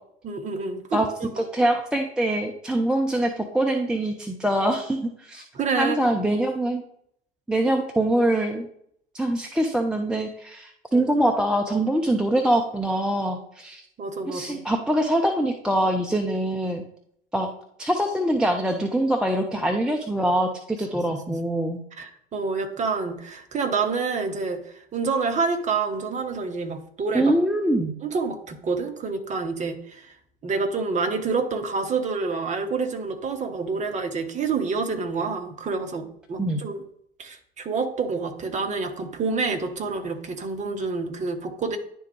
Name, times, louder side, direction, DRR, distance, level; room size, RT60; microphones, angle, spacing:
voice 1, 0.2-1.4 5.5-6.0 10.9-11.1 14.0-14.7 20.9-21.4 21.9-24.6 24.9-27.3 28.0-30.1 30.4-36.8 37.2-41.8, right 4 dB, 25° right, 5 dB, 0.9 m, -28 dB
voice 2, 1.4-5.4 5.8-6.8 7.5-8.7 9.1-13.8 14.3-16.8 17.3-17.5 17.8-21.8 27.1-28.0 36.4-36.6, right 1 dB, 5° right, 3 dB, 0.5 m, -24 dB
10.5 x 3.5 x 3.2 m, 0.68 s
figure-of-eight pair, 75°, 31 cm